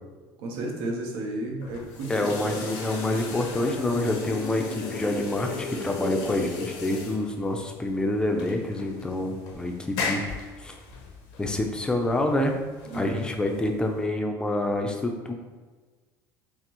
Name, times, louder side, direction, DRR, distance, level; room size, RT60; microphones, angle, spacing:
voice 1, 0.4-2.7 12.8-13.2, right 2 dB, 85° right, 0 dB, 0.8 m, -33 dB
sound 1, 1.6-14.0, left 4 dB, 85° left, 0.7 m, -36 dB
voice 2, 2.1-10.2 10.6-10.8 11.4-12.5 12.9-15.3, left 1 dB, 10° left, 3 dB, 0.4 m, -27 dB
5.8 x 2.0 x 2.9 m, 1.4 s
cardioid pair, 140°, 8 cm